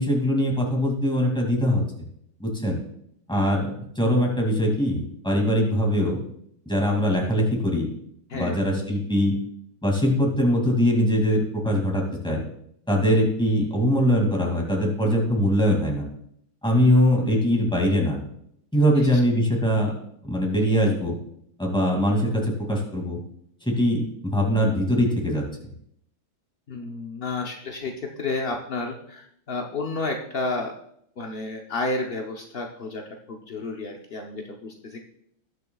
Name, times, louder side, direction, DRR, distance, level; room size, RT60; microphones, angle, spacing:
voice 1, 0.0-1.8 2.4-2.8 3.3-6.2 6.7-7.9 8.3-9.4 9.8-12.4 12.9-16.1 16.6-18.2 18.7-19.9 20.2-21.2 21.6-23.2 23.7-24.0 24.3-25.4, equal, ahead, -1 dB, 2.1 m, -22 dB
voice 2, 26.7-30.7 31.2-35.0, left 3 dB, 70° left, 1 dB, 0.5 m, -31 dB
19.0 x 6.6 x 2.3 m, 0.72 s
omnidirectional pair, 2.2 m